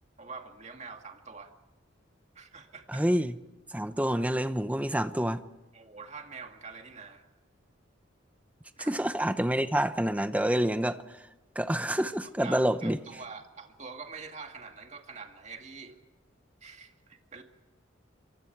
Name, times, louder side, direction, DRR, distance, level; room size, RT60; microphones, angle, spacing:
voice 1, 0.2-1.5 2.4-3.0 5.7-7.3 8.8-8.9 12.4-16.0 16.6-17.4, right 5 dB, 35° right, 2.1 m, -45 dB
voice 2, 2.9-3.3 3.7-5.4 8.8-11.2 11.6-13.0, right 1 dB, 5° right, 0.8 m, -27 dB
26.0 x 24.0 x 4.6 m
head